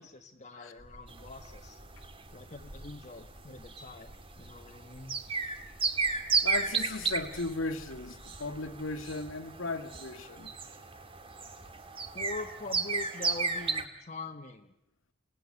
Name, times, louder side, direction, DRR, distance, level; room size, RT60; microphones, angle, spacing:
voice 1, 0.0-1.8 2.3-5.1 12.1-14.7, left 3 dB, 35° left, 1.4 m, -44 dB
sound 1, 0.8-9.0, equal, 45° right, 3.5 m, -54 dB
sound 2, 1.1-13.8, right 5 dB, 30° right, 2.0 m, -34 dB
voice 2, 6.4-10.5, left 3 dB, 90° left, 2.2 m, -36 dB
28.5 x 18.0 x 9.9 m
head